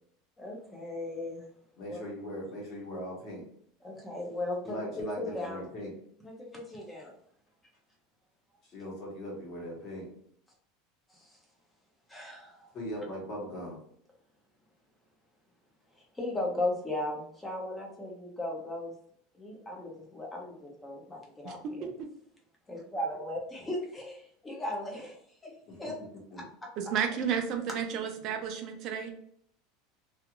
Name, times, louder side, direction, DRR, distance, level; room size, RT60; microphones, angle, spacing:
voice 1, 0.4-1.5 1.9-2.0 3.8-5.6 6.2-7.1 11.1-11.4 12.1-12.7 16.0-18.9 19.3-21.9 22.7-25.2 25.4-25.5 25.8-25.9 26.3-26.4, left 1 dB, 10° left, -1 dB, 0.5 m, -37 dB
voice 2, 1.8-3.4 4.6-5.9 8.7-10.1 12.7-13.8 25.7-25.8 26.3-26.4, equal, 30° left, -2 dB, 1.0 m, -39 dB
voice 3, 21.4-22.1 26.8-29.1, right 7 dB, 35° right, 5 dB, 0.4 m, -32 dB
2.4 x 2.3 x 2.8 m, 0.66 s
supercardioid pair, 175°, 0 cm